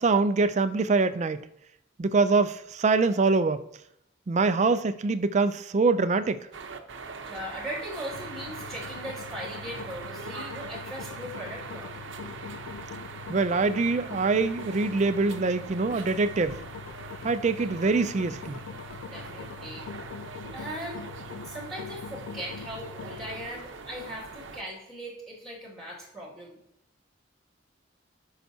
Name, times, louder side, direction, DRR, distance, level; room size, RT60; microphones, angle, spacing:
voice 1, 0.0-1.4 2.0-3.6 4.3-6.4 13.3-16.6 17.2-18.6, right 3 dB, 35° right, 0.4 m, -24 dB
sound 1, 6.5-24.6, right 4 dB, 80° right, 0.8 m, -42 dB
voice 2, 7.2-12.0 19.1-19.8 20.5-21.1 21.4-26.6, equal, 5° left, 2.1 m, -39 dB
sound 2, 8.1-23.5, left 6 dB, 85° left, 0.3 m, -43 dB
13.5 x 5.7 x 2.8 m
head